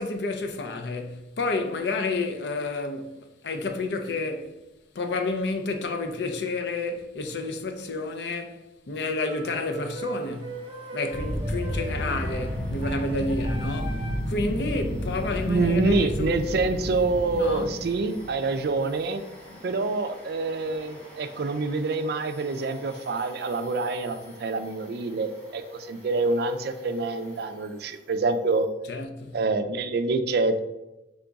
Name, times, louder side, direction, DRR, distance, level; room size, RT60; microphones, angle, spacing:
voice 1, 0.0-4.5 4.9-8.6 8.9-10.6 10.9-16.6 17.3-17.7 19.5-19.8 28.9-29.4, left 3 dB, 60° left, 0.5 m, -30 dB
sound 1, 9.2-14.3, right 3 dB, 35° right, 0.7 m, -39 dB
Domestic sounds home sounds, 9.8-28.7, equal, 10° left, 1.5 m, -51 dB
Robot From The Underworld, 11.1-18.8, equal, 35° left, 1.0 m, -31 dB
voice 2, 15.5-19.2 19.6-28.7 29.3-30.6, right 3 dB, 60° right, 0.4 m, -26 dB
3.7 x 3.5 x 3.9 m
head